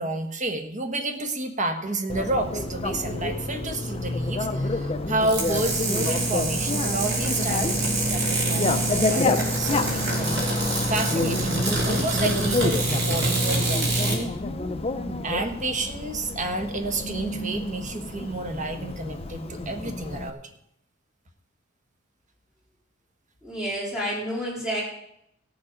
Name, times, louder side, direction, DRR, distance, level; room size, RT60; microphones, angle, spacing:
voice 1, 0.0-10.4 10.9-14.3 15.2-20.4, right 2 dB, 35° right, 5 dB, 1.4 m, -30 dB
Bicycle, 2.1-20.3, left 2 dB, 30° left, 0.7 m, -29 dB
sound 1, 5.2-14.2, right 2 dB, 55° right, 3.0 m, -26 dB
voice 2, 23.4-24.8, equal, 5° right, -6 dB, 4.3 m, -29 dB
17.0 x 7.2 x 5.1 m, 0.77 s
head